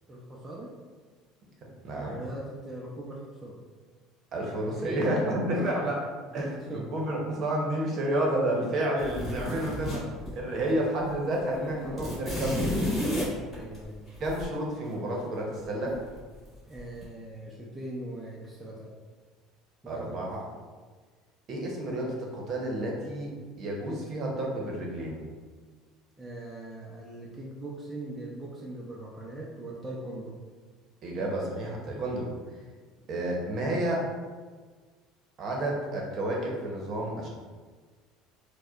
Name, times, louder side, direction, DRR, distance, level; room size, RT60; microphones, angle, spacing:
voice 1, 0.1-0.7 1.9-3.6 4.6-5.1 5.7-5.9 6.3-7.1 8.6-8.7 13.5-14.1 16.7-19.0 19.8-20.3 26.2-30.3, right 1 dB, 10° right, -5 dB, 0.5 m, -40 dB
voice 2, 1.8-2.2 4.3-6.0 6.3-10.0 10.3-13.2 14.2-16.0 19.9-20.4 21.5-23.3 23.6-25.2 31.0-32.3 33.1-34.0 35.4-37.3, right 1 dB, 45° right, -1 dB, 0.8 m, -30 dB
sound 1, 9.0-10.7 11.0-11.1 11.4-14.4 15.9-16.4 16.7-17.0, left 1 dB, 15° left, 1.5 m, -32 dB
4.6 x 2.2 x 2.4 m, 1.4 s
supercardioid pair, 120°, 0 cm